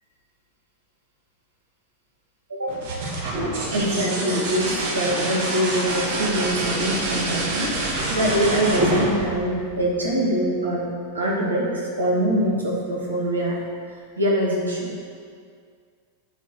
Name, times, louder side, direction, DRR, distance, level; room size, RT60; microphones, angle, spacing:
sound 1, 2.7-10.3 12.0-12.6, right 2 dB, 55° right, 1.7 m, -27 dB
voice 1, 3.7-10.9 11.1-13.6 14.2-14.9, right 1 dB, 75° right, -4 dB, 2.1 m, -24 dB
9.4 x 4.5 x 6.1 m, 2.1 s
figure-of-eight pair, 90°, 0 cm